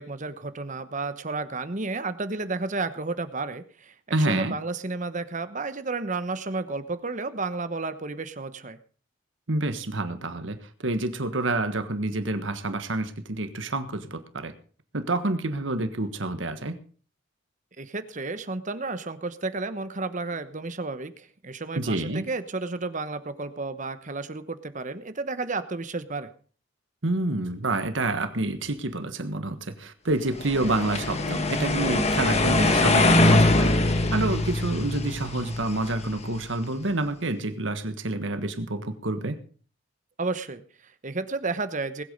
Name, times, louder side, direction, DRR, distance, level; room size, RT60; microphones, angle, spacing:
voice 1, 0.0-8.8 17.8-26.3 40.2-42.0, right 3 dB, 40° right, 11 dB, 1.1 m, -32 dB
voice 2, 4.1-4.5 9.5-14.5 14.9-16.8 21.8-22.3 27.0-33.7 34.1-39.4, right 2 dB, 70° right, 10 dB, 1.5 m, -28 dB
sound 1, 30.4-36.5, left 2 dB, 35° left, 1.4 m, -23 dB
20.0 x 8.4 x 5.3 m, 0.42 s
head